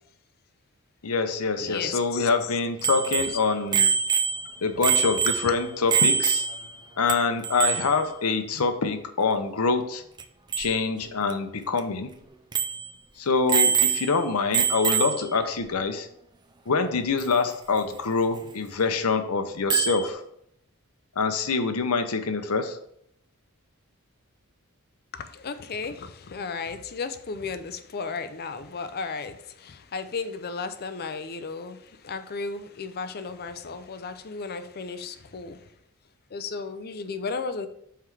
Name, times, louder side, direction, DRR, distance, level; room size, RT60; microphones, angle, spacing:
voice 1, 1.0-3.9 4.6-6.5 7.0-10.0 10.6-12.1 13.2-16.1 16.7-20.2 21.2-22.8, left 4 dB, 75° left, 8 dB, 0.8 m, -25 dB
voice 2, 1.6-2.3 3.2-3.7 5.4-5.5 25.1-35.6 36.3-37.7, left 4 dB, 45° left, 10 dB, 0.5 m, -34 dB
Bicycle bell, 2.8-6.8 7.1-7.2 7.4-8.0 10.2-10.3 10.5-10.7 11.3-11.4 11.8-11.9 12.5-12.9 13.5-14.2 14.5-15.3 17.2-17.3 19.7-20.1, right 7 dB, 20° right, 0.4 m, -24 dB
5.7 x 4.7 x 4.6 m, 0.71 s
head